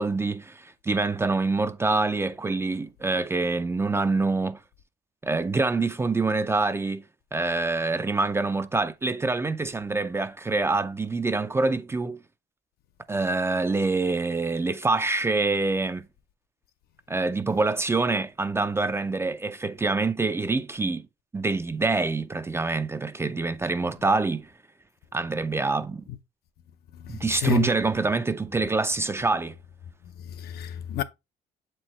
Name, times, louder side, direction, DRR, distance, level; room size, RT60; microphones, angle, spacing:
voice 1, 0.0-4.6 5.2-7.0 7.3-12.2 13.1-16.1 17.1-21.1 21.3-24.5 25.1-26.0 27.1-29.5, right 3 dB, 15° right, 0.4 m, -26 dB
voice 2, 27.0-27.7 30.4-31.0, left 12 dB, 70° left, 0.6 m, -29 dB
7.3 x 4.5 x 3.0 m
cardioid pair, 110°, 17 cm